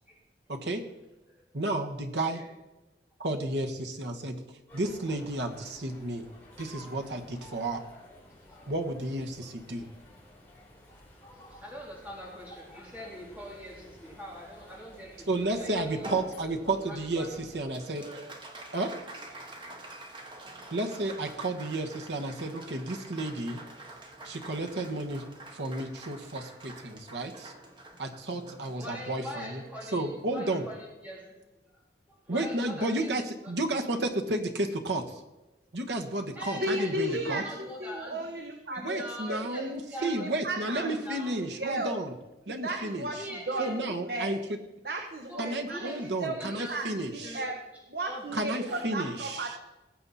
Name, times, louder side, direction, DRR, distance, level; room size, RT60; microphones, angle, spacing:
voice 1, 0.5-0.8 1.5-2.4 3.2-4.4 4.7-6.3 6.6-7.8 8.7-9.8 15.3-17.3 17.5-18.2 18.7-18.9 20.7-23.6 24.2-25.2 25.5-27.5 28.0-29.6 29.9-30.6 32.3-35.2 35.7-37.4 38.8-42.1 42.5-43.1 43.6-44.4 45.4-47.4 48.3-49.5, right 2 dB, 80° right, 4 dB, 1.4 m, -32 dB
voice 2, 2.1-2.5 9.3-9.5 9.7-10.0 10.2-10.3 11.2-16.1 16.9-17.3 18.8-18.9 20.6-20.8 22.5-22.6 26.3-26.5 28.8-31.4 31.7-33.2 33.4-33.5 36.3-38.3 38.7-40.3 40.6-41.3 42.7-42.8 43.1-44.3 45.3-46.1 46.4-46.9 47.2-47.5 48.1-48.9, equal, 10° right, -4 dB, 3.3 m, -43 dB
sound 1, 4.7-17.7, left 1 dB, 10° left, 3.5 m, -53 dB
Applause, 16.0-30.7, right 1 dB, 25° right, 1.5 m, -47 dB
voice 3, 36.5-39.7 40.0-42.0 42.5-43.2 43.5-43.7 44.0-44.4 44.8-45.9 46.2-46.8 47.1-47.5 47.9-49.6, right 1 dB, 60° right, 3 dB, 1.0 m, -35 dB
19.0 x 7.9 x 4.2 m, 1.0 s
head